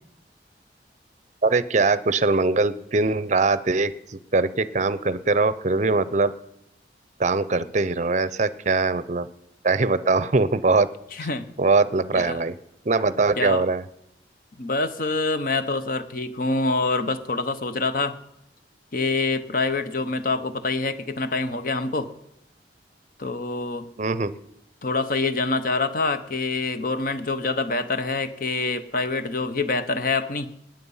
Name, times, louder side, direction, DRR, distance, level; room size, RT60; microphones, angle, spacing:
voice 1, 1.4-6.3 7.2-9.3 9.6-10.9 11.6-12.5 12.8-13.8 24.0-24.4, right 3 dB, 40° right, 16 dB, 0.6 m, -22 dB
voice 2, 11.1-11.5 12.1-12.4 13.4-13.6 14.6-18.2 18.9-22.1 23.2-23.9 24.8-30.5, left 3 dB, 50° left, 11 dB, 0.9 m, -26 dB
19.0 x 9.1 x 5.6 m, 0.79 s
head